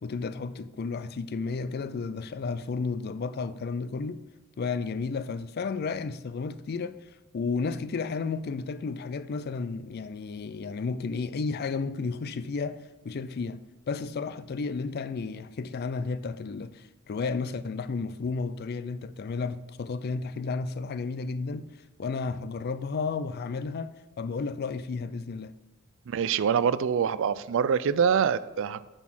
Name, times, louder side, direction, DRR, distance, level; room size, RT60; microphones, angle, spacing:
voice 1, 0.0-4.2 4.6-7.0 7.3-21.7 22.0-25.5, left 4 dB, 45° left, 0.4 m, -32 dB
voice 2, 26.1-28.8, right 7 dB, 60° right, 0.3 m, -25 dB
8.9 x 4.2 x 6.2 m
head